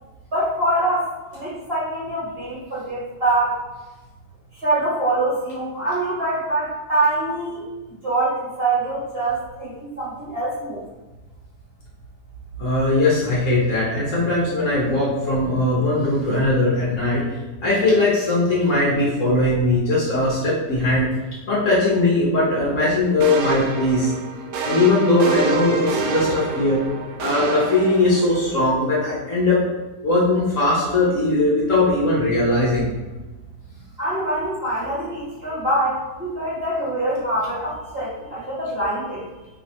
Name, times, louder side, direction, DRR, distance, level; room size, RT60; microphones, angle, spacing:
voice 1, 0.3-1.0 1.3-3.6 4.5-7.6 8.0-10.8 34.0-39.2, right 2 dB, 35° right, -10 dB, 1.8 m, -24 dB
voice 2, 12.6-17.2 17.6-21.1 21.5-24.1 24.6-26.8 27.2-29.6 30.0-32.9, left 2 dB, 55° left, -7 dB, 1.3 m, -19 dB
sound 1, 23.2-28.5, right 4 dB, 85° right, 1.2 m, -28 dB
3.5 x 3.1 x 4.1 m, 1.1 s
omnidirectional pair, 1.8 m